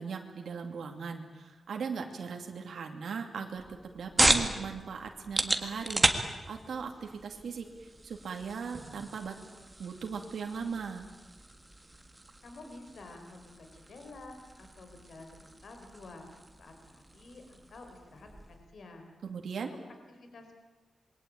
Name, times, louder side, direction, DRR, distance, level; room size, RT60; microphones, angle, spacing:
voice 1, 0.0-9.4 9.8-11.0 19.2-19.7, right 5 dB, 80° right, 3 dB, 2.5 m, -39 dB
sound 1, 3.5-18.7, right 2 dB, 15° right, 1.8 m, -35 dB
voice 2, 12.4-16.3 16.6-19.1 19.5-19.7 20.2-20.5, left 2 dB, 60° left, 5 dB, 4.4 m, -50 dB
27.0 x 22.5 x 8.7 m, 1.2 s
wide cardioid pair, 170°, 0 cm